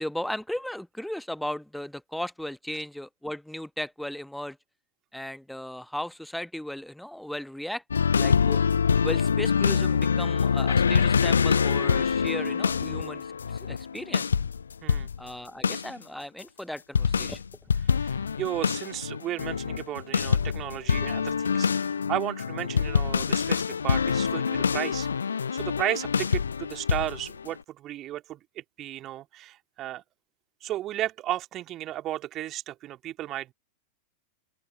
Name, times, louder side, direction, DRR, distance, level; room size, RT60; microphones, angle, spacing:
voice 1, 0.0-4.6 5.1-7.8 8.2-8.6 9.0-13.3 13.5-14.3 15.2-17.4, left 1 dB, ahead, 1.0 m, -36 dB
sound 1, 7.9-15.3 15.6-15.9 17.0-27.5, left 6 dB, 70° left, 0.5 m, -25 dB
voice 2, 17.8-25.1 25.5-30.0 30.6-33.5, right 14 dB, 35° right, 1.9 m, -34 dB
open air
figure-of-eight pair, 90°, 0 cm